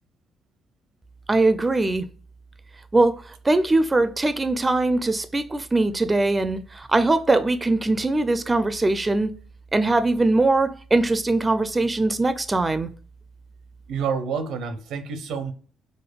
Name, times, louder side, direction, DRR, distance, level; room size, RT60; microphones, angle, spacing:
voice 1, 1.3-2.1 2.9-9.3 9.7-12.9, right 2 dB, 20° right, 0.4 m, -21 dB
voice 2, 13.9-15.5, right 6 dB, 85° right, 0.6 m, -28 dB
5.1 x 2.2 x 2.2 m
cardioid pair, 90°, 0 cm